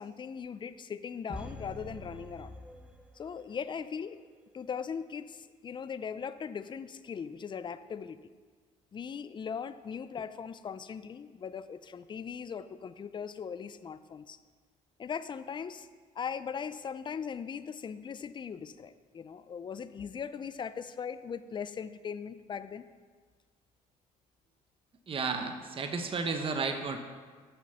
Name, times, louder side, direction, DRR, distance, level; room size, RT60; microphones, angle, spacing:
voice 1, 0.0-2.5 3.1-4.2 4.5-8.3 8.9-14.4 15.0-15.9 16.1-22.8, left 6 dB, 30° left, 13 dB, 0.5 m, -39 dB
sound 1, 1.3-3.5 3.8-3.9, left 1 dB, 5° right, 0.9 m, -45 dB
voice 2, 25.1-27.0, right 4 dB, 35° right, 5 dB, 1.0 m, -32 dB
9.4 x 6.2 x 6.8 m, 1.5 s
cardioid pair, 85°, 15 cm